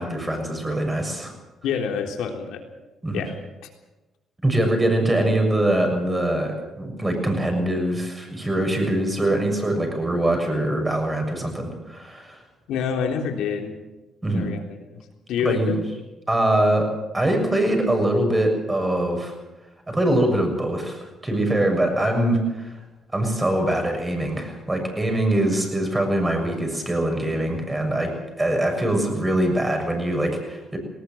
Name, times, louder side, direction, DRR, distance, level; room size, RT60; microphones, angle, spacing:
voice 1, 0.0-1.3 3.0-3.2 4.4-12.4 14.2-14.5 15.4-15.7 16.3-19.3 19.9-22.7 23.1-28.1 28.4-30.8, right 1 dB, 15° right, 3 dB, 6.9 m, -23 dB
voice 2, 1.6-2.6 3.1-3.3 12.7-13.7 14.3-15.0 15.3-15.8, left 7 dB, 85° left, 3 dB, 3.6 m, -27 dB
19.5 x 18.5 x 7.8 m, 1.1 s
cardioid pair, 90°, 0 cm